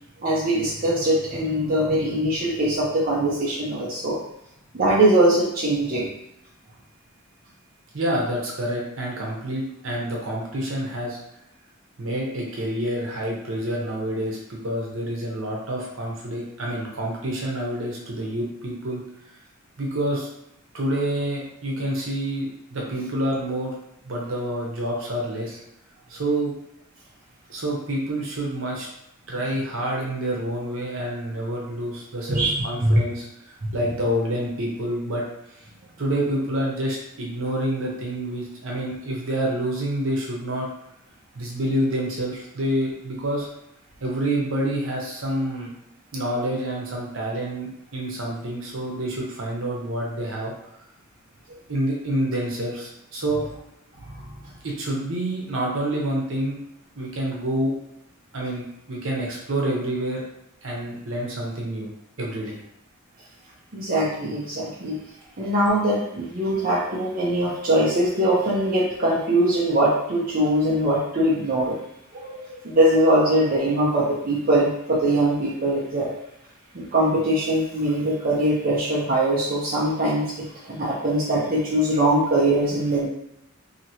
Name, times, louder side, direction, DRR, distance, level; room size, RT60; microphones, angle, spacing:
voice 1, 0.2-4.2 4.7-6.1 32.3-33.0 33.6-33.7 54.1-54.4 63.7-65.0 65.4-71.8 72.1-76.1 76.7-83.1, right 1 dB, 45° right, -6 dB, 0.6 m, -22 dB
voice 2, 7.9-11.2 12.0-19.0 19.8-20.3 20.7-23.7 24.0-25.6 26.1-26.5 27.5-28.9 29.3-35.2 36.0-40.7 41.3-43.5 44.0-45.7 46.1-50.5 51.7-53.4 54.6-56.6 57.0-57.7 58.3-60.2 60.6-61.9 62.2-62.6, right 1 dB, 70° right, -2 dB, 0.9 m, -27 dB
2.9 x 2.8 x 2.8 m, 0.81 s
head